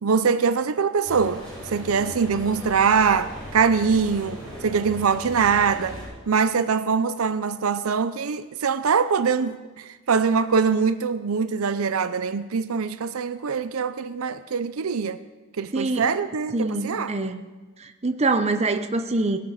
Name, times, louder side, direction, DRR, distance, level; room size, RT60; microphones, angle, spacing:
voice 1, 0.0-6.0 6.3-15.2 15.6-17.1, right 5 dB, 75° right, 13 dB, 0.6 m, -23 dB
sound 1, 1.0-6.0, equal, 5° left, 6.2 m, -38 dB
voice 2, 15.7-16.0 16.5-17.4 17.8-19.4, right 3 dB, 30° right, 8 dB, 0.7 m, -24 dB
18.5 x 8.0 x 6.6 m, 1.3 s
head